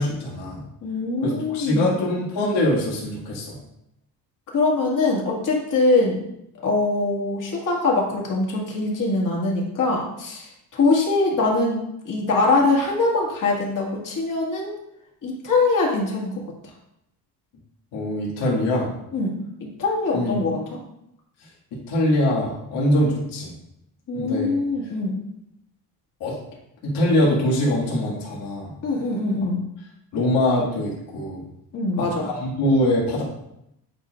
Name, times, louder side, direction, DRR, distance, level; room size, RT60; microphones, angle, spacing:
voice 1, 0.0-0.6 1.2-3.6 17.9-18.9 20.1-20.4 21.7-23.5 24.1-24.6 26.2-26.4 26.8-28.7 30.1-31.4 32.0-33.2, left 1 dB, 85° left, -4 dB, 2.2 m, -23 dB
voice 2, 0.8-2.1 4.5-6.2 6.6-14.8 15.2-16.3 19.1-19.4 19.8-20.6 24.1-25.2 28.8-29.6 31.7-32.3, left 3 dB, 50° left, -3 dB, 2.0 m, -23 dB
8.7 x 4.6 x 2.5 m, 0.81 s
cardioid pair, 125°, 40 cm